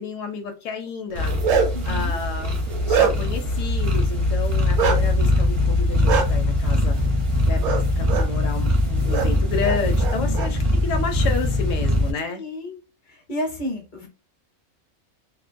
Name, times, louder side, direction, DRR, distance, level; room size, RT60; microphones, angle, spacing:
voice 1, 0.0-1.4 1.8-7.0 7.5-12.4, left 5 dB, 70° left, 0.9 m, -31 dB
sound 1, 1.1-12.1, left 1 dB, 40° right, 0.4 m, -22 dB
Bark, 1.1-1.9 2.4-3.4 4.8-5.0 6.1-6.2 7.6-7.8 8.1-8.3 9.1-9.3 9.6-10.5, right 6 dB, 65° right, 0.8 m, -22 dB
voice 2, 1.7-2.2 10.1-10.5 12.3-12.8 13.1-14.1, left 1 dB, 45° left, 0.7 m, -32 dB
2.5 x 2.1 x 2.5 m
omnidirectional pair, 1.4 m